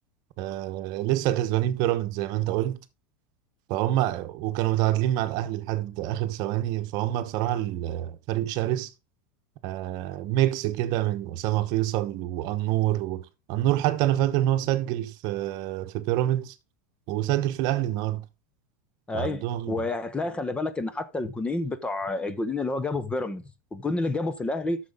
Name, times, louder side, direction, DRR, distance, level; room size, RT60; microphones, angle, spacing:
voice 1, 0.4-2.8 3.7-8.9 9.6-16.5 17.1-18.3 19.1-19.8, right 14 dB, 50° right, 1.0 m, -26 dB
voice 2, 19.1-23.4 23.7-24.8, left 2 dB, 10° left, 0.8 m, -29 dB
9.5 x 6.5 x 3.6 m
supercardioid pair, 135°, 9 cm